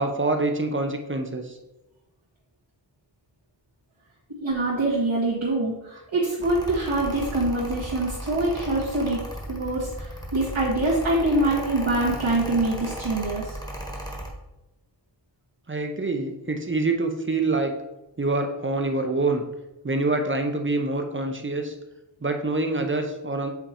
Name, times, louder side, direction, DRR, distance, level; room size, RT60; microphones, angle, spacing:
voice 1, 0.0-1.6 15.7-17.8 18.2-19.4 19.8-21.7 22.2-23.5, right 2 dB, 25° right, 5 dB, 0.7 m, -26 dB
voice 2, 4.4-9.2 9.5-13.6, right 2 dB, 85° right, -9 dB, 1.8 m, -24 dB
Mechanical fan, 6.4-14.3, equal, 10° left, 1.3 m, -35 dB
7.9 x 2.9 x 4.3 m, 0.98 s
wide cardioid pair, 65°, 45 cm